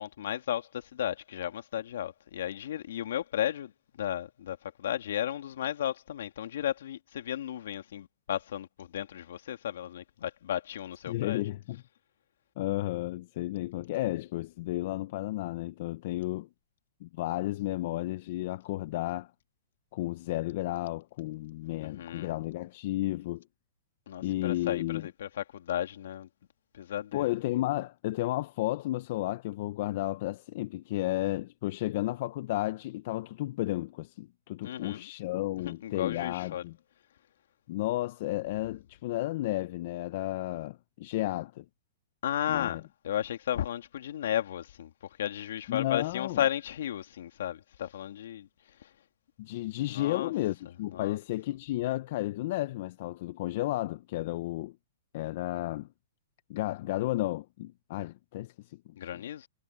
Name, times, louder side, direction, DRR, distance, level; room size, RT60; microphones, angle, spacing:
voice 1, 0.0-11.4 21.6-22.3 24.1-26.3 26.7-27.3 34.6-35.1 35.6-36.6 42.2-48.5 48.8-48.9 49.9-50.3 50.9-51.2 59.0-59.5, left 11 dB, 70° left, 2.5 m, -34 dB
voice 2, 11.1-11.8 12.6-16.5 17.0-19.3 19.9-23.4 24.2-25.0 27.1-36.7 37.7-41.6 42.5-42.8 45.7-46.4 49.4-54.8 55.1-55.9 56.5-58.8 59.1-59.2, left 16 dB, 55° left, 0.9 m, -32 dB
hypercardioid pair, 135°, 0 cm